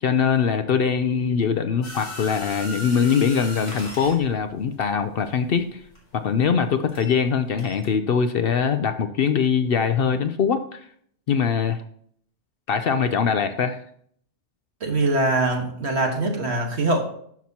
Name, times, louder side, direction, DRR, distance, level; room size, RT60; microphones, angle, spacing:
voice 1, 0.0-5.8 6.1-10.9 11.3-11.8 12.7-13.8, left 6 dB, 60° left, 9 dB, 0.7 m, -22 dB
sound 1, 1.8-7.3 7.6-7.9, left 1 dB, 35° left, 2.5 m, -38 dB
voice 2, 14.8-17.0, right 2 dB, 65° right, 2 dB, 1.7 m, -22 dB
12.0 x 5.9 x 2.8 m, 0.63 s
omnidirectional pair, 1.2 m